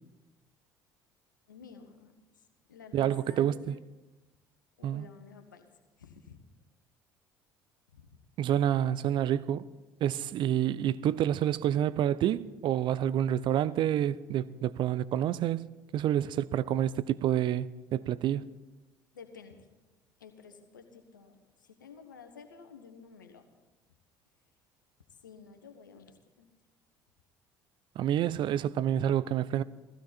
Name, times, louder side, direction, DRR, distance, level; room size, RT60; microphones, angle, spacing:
voice 1, 1.5-3.8 4.8-5.7 6.0-6.4 7.9-8.1 19.1-19.7 20.2-23.5 25.2-26.5, left 5 dB, 85° left, 1.2 m, -52 dB
voice 2, 2.9-3.7 4.8-5.1 8.4-9.7 10.0-15.7 15.9-18.5 28.0-29.6, right 11 dB, 50° right, 0.5 m, -28 dB
16.5 x 15.5 x 4.3 m
figure-of-eight pair, 55°, 10 cm